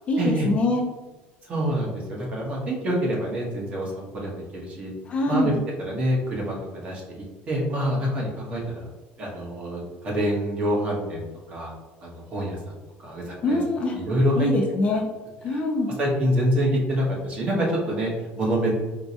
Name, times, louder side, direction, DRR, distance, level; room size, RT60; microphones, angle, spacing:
voice 1, 0.1-0.9 5.1-5.6 13.4-14.0 14.4-15.1 15.4-15.9, left 2 dB, 30° left, 1 dB, 0.4 m, -24 dB
voice 2, 1.5-4.9 5.3-5.5 5.8-8.9 9.2-11.7 12.0-13.6 13.9-14.5 15.5-15.6 16.0-18.1 18.4-18.7, equal, 30° right, -3 dB, 1.0 m, -26 dB
4.4 x 2.1 x 2.7 m, 1.2 s
cardioid pair, 155°, 4 cm